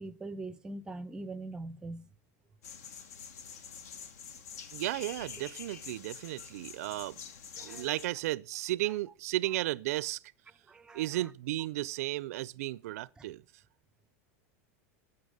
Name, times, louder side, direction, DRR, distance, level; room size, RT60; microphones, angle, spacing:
voice 1, 0.0-2.1 7.6-7.9 8.8-9.0 10.7-11.3 13.2-13.3, right 2 dB, 10° right, 0.4 m, -42 dB
sound 1, 2.6-8.1, left 6 dB, 80° left, 1.2 m, -46 dB
voice 2, 4.7-7.2 7.6-10.2 10.9-13.4, right 16 dB, 75° right, 0.4 m, -34 dB
9.5 x 5.6 x 7.8 m
supercardioid pair, 140°, 8 cm